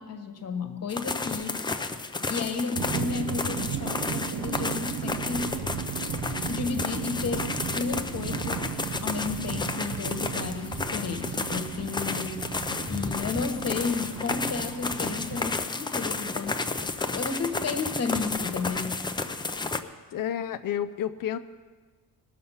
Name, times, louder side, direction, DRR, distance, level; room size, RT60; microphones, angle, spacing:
voice 1, 0.0-1.9 2.3-5.5 6.4-8.7 9.0-12.5 12.9-16.6 17.0-19.0, left 5 dB, 40° left, 7 dB, 1.1 m, -32 dB
sound 1, 0.9-19.8, left 3 dB, 15° left, 0.3 m, -32 dB
sound 2, 2.8-15.6, right 10 dB, 65° right, 0.5 m, -36 dB
voice 2, 20.1-21.4, left 10 dB, 60° left, 10 dB, 0.6 m, -30 dB
19.5 x 6.7 x 5.6 m, 1.4 s
wide cardioid pair, 170°, 38 cm